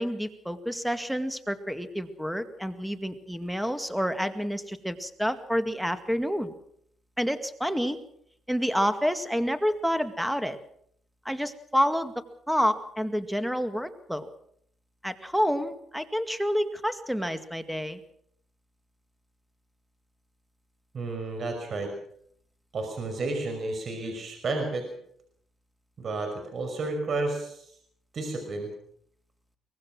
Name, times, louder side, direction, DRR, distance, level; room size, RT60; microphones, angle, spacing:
voice 1, 0.0-6.5 7.2-8.0 8.5-10.6 11.3-12.1 12.5-14.3 15.0-18.0, equal, ahead, 9 dB, 2.1 m, -28 dB
voice 2, 20.9-21.9 22.7-24.9 26.0-27.7 28.1-28.7, right 2 dB, 50° right, 5 dB, 5.7 m, -31 dB
24.0 x 19.5 x 6.2 m, 0.67 s
cardioid pair, 90°, 0 cm